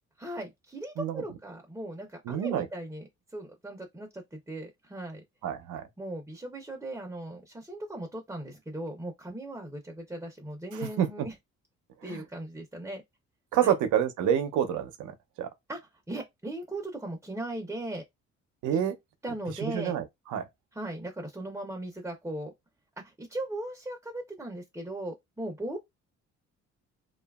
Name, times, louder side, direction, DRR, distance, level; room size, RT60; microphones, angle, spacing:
voice 1, 0.2-5.2 6.0-11.3 12.0-13.0 13.6-13.7 15.7-15.8 16.1-18.0 18.7-18.8 19.2-20.0 20.7-22.5 23.0-25.8, right 1 dB, 10° right, 0.6 m, -38 dB
voice 2, 2.3-2.7 5.4-5.9 11.0-11.1 12.0-12.2 13.5-15.5 18.6-18.9 19.6-20.0 20.3-20.5, right 9 dB, 80° right, 0.6 m, -27 dB
2.7 x 2.4 x 2.3 m
cardioid pair, 90°, 30 cm